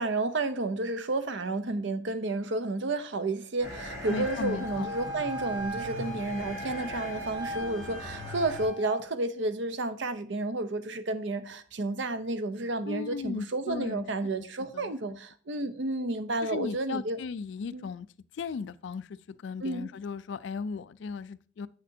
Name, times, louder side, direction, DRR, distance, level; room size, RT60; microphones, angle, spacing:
voice 1, 0.0-17.2 17.7-17.9 19.6-19.9, right 2 dB, 65° right, 0.6 m, -31 dB
sound 1, 3.6-8.7, equal, 80° right, 3.3 m, -41 dB
Wind instrument woodwind instrument, 4.0-9.0, equal, 40° right, 2.2 m, -39 dB
voice 2, 4.1-4.9 12.9-14.1 14.7-14.9 16.4-18.1 18.3-21.7, left 5 dB, 65° left, 0.3 m, -36 dB
8.3 x 6.5 x 2.7 m
head